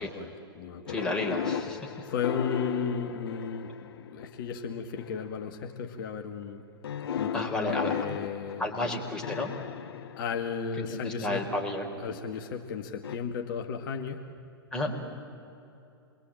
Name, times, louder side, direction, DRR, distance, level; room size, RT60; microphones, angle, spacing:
voice 1, 0.0-1.0 2.0-6.6 7.2-8.9 10.2-11.5 12.0-14.3, left 6 dB, 55° left, 4 dB, 1.8 m, -34 dB
sound 1, 0.9-4.2 5.0-5.4 6.8-11.0 13.0-13.2, left 8 dB, 70° left, 1.0 m, -36 dB
voice 2, 0.9-1.9 7.3-7.9 8.6-9.5 10.9-11.9 14.7-15.0, left 1 dB, 5° left, -1 dB, 4.5 m, -31 dB
27.5 x 22.5 x 9.0 m, 2.7 s
hypercardioid pair, 115°, 13 cm